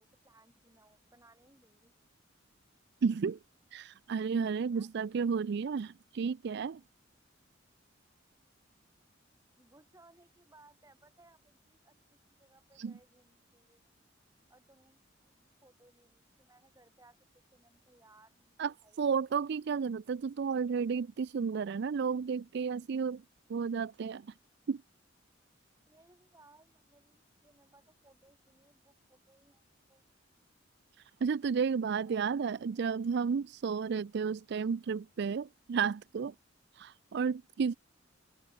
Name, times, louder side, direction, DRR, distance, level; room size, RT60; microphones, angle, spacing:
voice 1, 0.0-1.9 4.5-4.9 9.5-13.9 14.5-17.2 17.5-19.2 25.9-30.0 32.0-32.9, right 2 dB, 15° right, 3.3 m, -64 dB
voice 2, 3.0-3.4 3.7-6.8 12.8-12.9 18.6-18.7 19.0-23.2 23.5-24.3 24.7-24.8 31.2-36.3 36.8-37.7, right 6 dB, 60° right, 0.4 m, -32 dB
open air
head